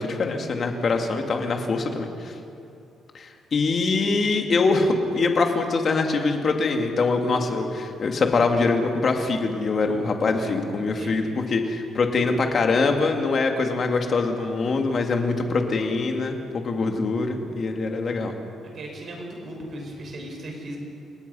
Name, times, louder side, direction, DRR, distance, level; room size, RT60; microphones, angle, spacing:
voice 1, 0.0-2.3 3.1-18.4, left 3 dB, 40° left, 3 dB, 2.3 m, -23 dB
voice 2, 10.9-11.3 18.7-20.8, right 1 dB, 40° right, 1 dB, 5.5 m, -37 dB
29.0 x 19.0 x 5.6 m, 2.6 s
cardioid pair, 150°, 0 cm